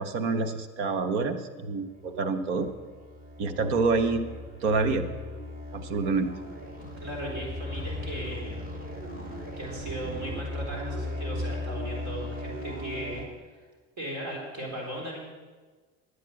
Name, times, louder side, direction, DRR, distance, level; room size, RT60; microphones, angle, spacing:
voice 1, 0.0-2.7 3.4-4.3 4.6-5.1 5.7-6.3, right 4 dB, 90° right, 9 dB, 1.1 m, -27 dB
sound 1, 1.9-13.3, left 1 dB, 25° right, 3.2 m, -37 dB
voice 2, 6.8-8.6 9.1-13.6 14.0-15.2, right 1 dB, 60° right, -1 dB, 3.9 m, -37 dB
11.5 x 8.4 x 7.6 m, 1.4 s
supercardioid pair, 80°, 33 cm